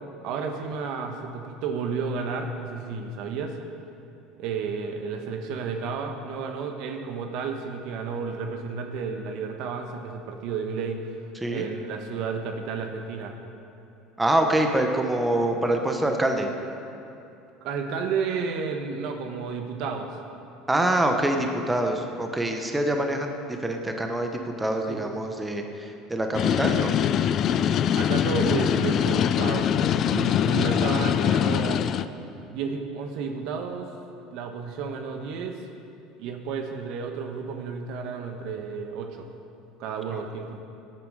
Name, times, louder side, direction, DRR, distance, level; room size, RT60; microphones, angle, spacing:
voice 1, 0.2-3.5 4.4-11.0 11.5-13.4 17.6-20.2 24.9-25.1 27.9-31.9 32.5-33.9 34.3-35.6 36.2-39.3 39.8-40.6, right 5 dB, 65° right, 4 dB, 1.3 m, -32 dB
voice 2, 14.2-16.5 20.7-23.3 23.6-24.3 24.6-26.9 40.1-40.2, right 1 dB, 10° right, 4 dB, 1.2 m, -25 dB
sound 1, 26.3-32.1, left 9 dB, 45° left, 0.4 m, -23 dB
17.0 x 8.9 x 5.0 m, 2.7 s
supercardioid pair, 105°, 0 cm